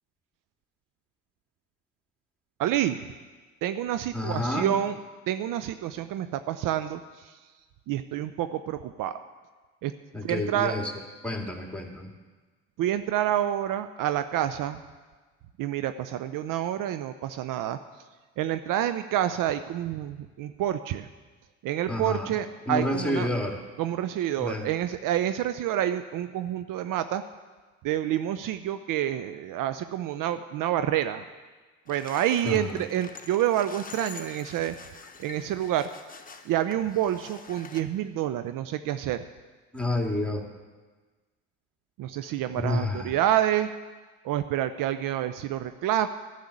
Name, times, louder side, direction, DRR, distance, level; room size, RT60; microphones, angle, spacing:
voice 1, 2.6-3.0 3.6-5.0 5.3-7.4 7.9-9.1 9.8-9.9 10.2-10.7 12.8-14.8 15.6-17.8 18.4-21.1 21.6-23.3 23.8-27.2 27.8-31.3 31.9-34.7 35.2-35.9 36.5-39.2 42.0-43.7 44.2-46.1, right 11 dB, 60° right, 11 dB, 0.6 m, -28 dB
voice 2, 4.1-4.7 10.1-10.9 11.2-12.1 21.9-22.3 22.7-23.6 24.4-24.7 32.4-32.8 39.7-40.5 42.6-43.1, left 1 dB, 5° left, 1 dB, 2.2 m, -29 dB
sound 1, 31.9-37.8, left 5 dB, 20° left, 1.1 m, -46 dB
11.5 x 6.6 x 8.4 m, 1.3 s
hypercardioid pair, 55°, 37 cm